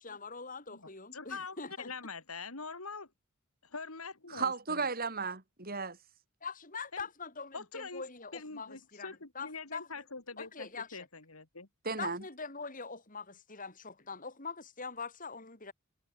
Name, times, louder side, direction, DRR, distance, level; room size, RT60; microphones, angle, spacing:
voice 1, 0.0-1.9 6.4-9.9 10.4-11.1 12.0-15.7, left 4 dB, 40° left, 6.4 m, -43 dB
voice 2, 0.7-3.1 3.6-4.8 6.9-7.1 7.5-8.0 8.3-11.7, left 4 dB, 85° left, 3.5 m, -44 dB
voice 3, 4.3-6.0 11.8-12.2, right 4 dB, 45° right, 4.0 m, -34 dB
head